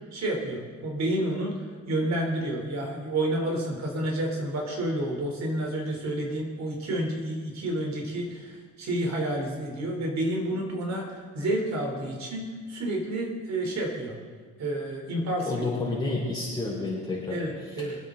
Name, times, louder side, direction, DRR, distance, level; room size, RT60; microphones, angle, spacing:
voice 1, 0.1-1.6 1.9-14.2 14.6-15.5 17.3-18.0, right 1 dB, 60° right, 0 dB, 3.9 m, -30 dB
voice 2, 15.5-17.4 17.8-17.9, left 3 dB, 15° left, -7 dB, 4.2 m, -30 dB
24.5 x 8.6 x 4.1 m, 1.5 s
cardioid pair, 90°, 30 cm